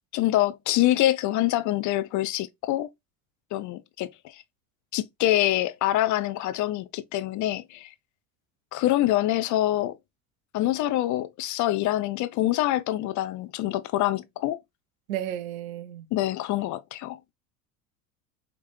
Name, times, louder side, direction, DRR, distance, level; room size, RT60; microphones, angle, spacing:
voice 1, 0.1-2.9 3.5-4.4 4.9-7.9 8.7-10.0 10.5-14.6 16.1-17.2, left 14 dB, 45° left, 0.6 m, -25 dB
voice 2, 15.1-16.1, right 11 dB, 75° right, 0.8 m, -33 dB
5.1 x 3.2 x 2.6 m
hypercardioid pair, 70°, 42 cm